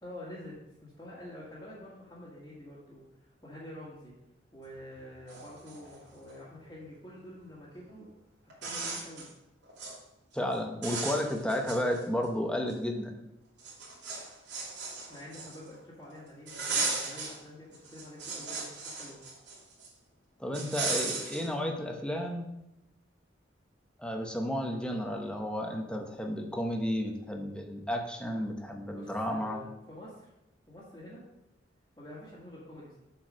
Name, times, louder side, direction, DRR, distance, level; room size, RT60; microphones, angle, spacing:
voice 1, 0.0-3.0 3.4-4.1 4.5-8.1 8.4-9.3 14.8-19.2 28.9-30.3 30.7-31.2 32.0-33.0, left 1 dB, 20° left, -9 dB, 1.8 m, -47 dB
sound 1, 4.9-5.0 5.3-6.4 7.9-8.0 8.5-9.3 9.6-10.0 10.3-10.5 10.8-12.2 12.7-12.8 13.6-15.8 16.5-17.4 17.7-19.9 20.5-21.5, right 4 dB, 65° right, 2.9 m, -36 dB
voice 2, 10.3-13.2 20.4-22.5 24.0-29.6, equal, 5° left, 2 dB, 0.9 m, -32 dB
7.8 x 4.7 x 6.3 m, 0.89 s
head